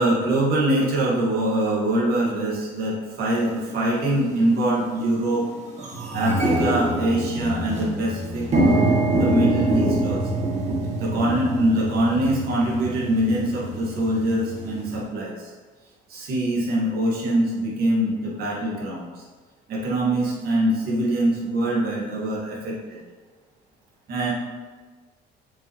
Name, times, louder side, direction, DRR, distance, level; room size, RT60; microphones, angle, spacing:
voice 1, 0.0-5.5 6.1-8.5 9.2-10.5 11.0-15.5 16.1-19.1 19.7-23.0 24.1-24.3, right 1 dB, 65° right, -4 dB, 2.0 m, -23 dB
sound 1, 3.4-3.5 4.3-4.5 4.9-5.0 5.3-15.0, right 1 dB, 40° right, 1.6 m, -25 dB
6.8 x 5.3 x 3.2 m, 1.4 s
cardioid pair, 110°, 17 cm